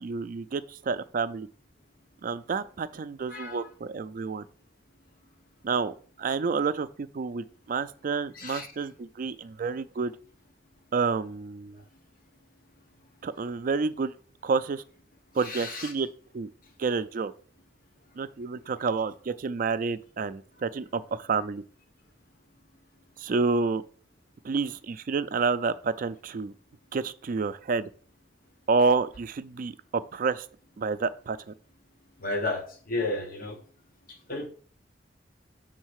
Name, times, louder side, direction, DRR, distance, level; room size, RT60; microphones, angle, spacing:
voice 1, 0.0-1.5 2.2-4.5 5.6-10.1 10.9-11.8 13.2-14.1 14.4-14.8 15.3-16.1 16.3-16.5 16.8-17.3 18.2-21.6 23.2-23.8 24.4-26.5 26.9-27.9 28.7-30.5 30.8-31.5, right 4 dB, 50° right, 0.4 m, -29 dB
voice 2, 3.3-3.7 8.3-8.7 15.4-15.9 32.2-33.6 34.3-34.5, left 2 dB, 50° left, 1.1 m, -32 dB
6.4 x 3.9 x 6.3 m
head